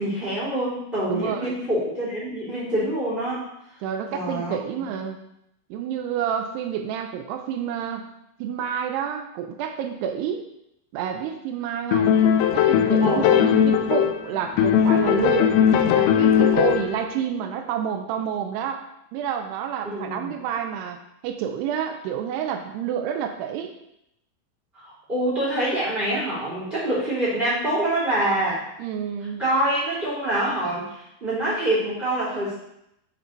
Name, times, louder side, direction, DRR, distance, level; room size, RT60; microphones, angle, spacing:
voice 1, 0.0-3.4 4.1-4.5 13.0-13.5 19.8-20.3 24.8-28.6 29.4-31.0 31.2-32.5, right 1 dB, 15° right, -9 dB, 2.3 m, -25 dB
voice 2, 1.1-1.5 3.8-5.2 5.7-8.1 8.4-10.5 10.9-12.2 12.5-15.6 15.9-18.8 19.1-21.0 21.2-23.7 28.8-29.4, right 8 dB, 90° right, 5 dB, 2.7 m, -29 dB
sound 1, 11.9-14.2 14.6-17.0, left 9 dB, 80° left, 2.3 m, -19 dB
8.3 x 4.0 x 4.4 m, 0.80 s
omnidirectional pair, 4.6 m